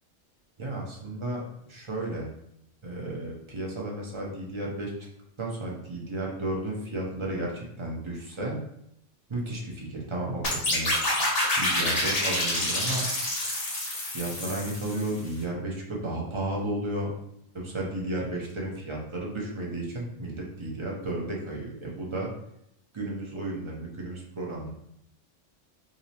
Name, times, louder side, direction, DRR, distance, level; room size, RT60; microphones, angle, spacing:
voice 1, 0.6-2.3 2.8-4.9 5.4-8.6 9.3-10.9 11.6-13.1 14.1-17.1 17.5-22.3 22.9-24.7, right 1 dB, 30° right, -3 dB, 0.6 m, -33 dB
sound 1, 10.4-15.3, left 1 dB, 55° left, 1.1 m, -28 dB
4.9 x 2.0 x 2.8 m, 0.75 s
omnidirectional pair, 1.3 m